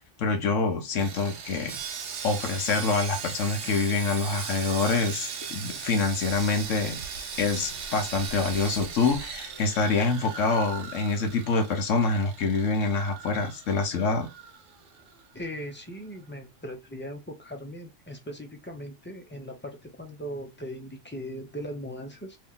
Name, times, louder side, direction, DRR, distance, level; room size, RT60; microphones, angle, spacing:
voice 1, 0.2-1.8 2.2-7.0 7.4-14.3, left 4 dB, 80° left, 1.2 m, -26 dB
Sawing, 1.0-15.2 15.5-15.7 16.1-16.2, right 6 dB, 75° right, 1.1 m, -38 dB
voice 2, 15.3-22.4, equal, 10° left, 0.7 m, -39 dB
3.1 x 2.7 x 3.7 m
omnidirectional pair, 1.3 m